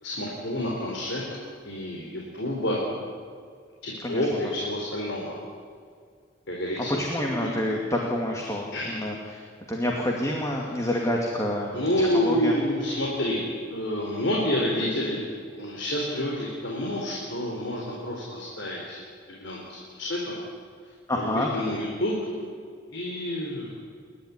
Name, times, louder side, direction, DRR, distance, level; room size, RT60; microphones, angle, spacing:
voice 1, 0.0-1.2 1.6-2.8 3.8-5.4 6.5-7.0 7.4-7.5 8.7-9.1 11.7-13.4 13.7-15.2 15.5-19.0 19.3-20.4 21.2-22.4 22.9-23.8, left 1 dB, 80° left, -3 dB, 4.3 m, -28 dB
voice 2, 4.0-4.5 6.9-9.4 9.7-12.5 21.1-21.5, left 1 dB, 15° left, 0 dB, 2.4 m, -28 dB
29.5 x 12.0 x 9.8 m, 2.1 s
head